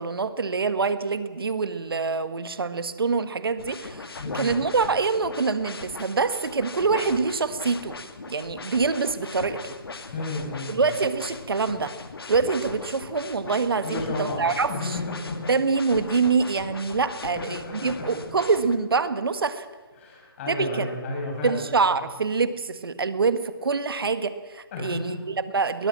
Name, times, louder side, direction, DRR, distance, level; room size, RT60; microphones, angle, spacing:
voice 1, 0.0-4.1 4.3-7.9 8.3-9.7 10.7-11.9 12.3-15.0 15.5-19.7 20.5-20.9 21.4-25.9, right 4 dB, 70° right, 11 dB, 1.7 m, -25 dB
sound 1, 3.6-18.8, left 4 dB, 75° left, 2.1 m, -39 dB
voice 2, 4.2-4.5 10.1-10.9 13.8-15.5 17.5-18.2 20.0-21.6 24.7-25.2, left 2 dB, 35° left, 0 dB, 7.7 m, -32 dB
21.5 x 18.5 x 7.5 m, 1.3 s
figure-of-eight pair, 155°, 13 cm